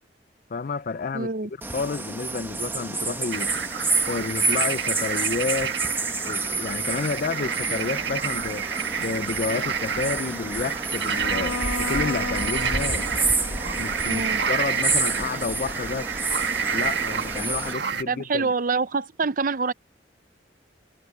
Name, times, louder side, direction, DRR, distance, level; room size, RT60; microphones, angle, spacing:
voice 1, 0.5-1.3 1.7-3.5 4.1-5.8 6.2-8.7 9.0-13.1 13.7-16.1 16.7-18.5, left 4 dB, 45° left, 0.4 m, -30 dB
voice 2, 1.1-1.5 14.0-14.4 18.1-19.7, right 4 dB, 45° right, 0.6 m, -26 dB
sound 1, 1.6-17.7, right 3 dB, 10° right, 0.9 m, -29 dB
sound 2, 3.3-18.0, right 6 dB, 65° right, 1.5 m, -29 dB
Bowed string instrument, 11.1-15.1, left 3 dB, 85° left, 1.7 m, -35 dB
head